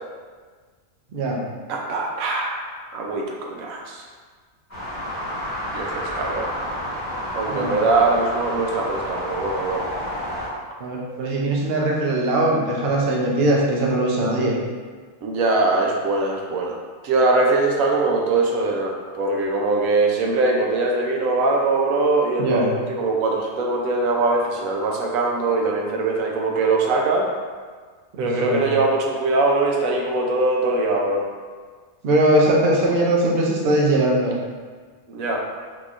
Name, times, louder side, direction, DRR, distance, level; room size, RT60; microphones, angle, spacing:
voice 1, 1.1-1.4 7.5-7.8 10.8-14.5 22.4-22.7 28.1-28.6 32.0-34.4, right 1 dB, 60° right, -2 dB, 0.7 m, -20 dB
voice 2, 1.7-4.0 5.7-6.5 7.4-9.9 15.2-27.3 28.2-31.3 35.1-35.5, right 3 dB, 85° right, 0 dB, 1.0 m, -22 dB
sound 1, 4.7-10.5, equal, 15° left, 1.3 m, -30 dB
3.9 x 2.9 x 2.4 m, 1.5 s
omnidirectional pair, 1.4 m